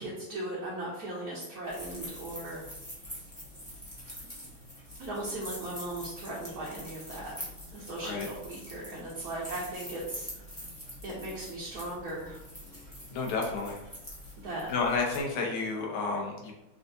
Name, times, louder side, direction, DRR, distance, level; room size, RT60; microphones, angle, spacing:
voice 1, 0.0-2.6 5.0-7.4 7.7-10.7 11.0-12.4 14.4-14.7, right 1 dB, 60° right, -6 dB, 1.2 m, -38 dB
sound 1, 1.6-15.2, equal, 15° left, 0.7 m, -45 dB
voice 2, 13.1-13.8 14.7-16.5, left 4 dB, 85° left, -1 dB, 1.7 m, -31 dB
5.6 x 2.7 x 2.6 m, 0.94 s
omnidirectional pair, 2.2 m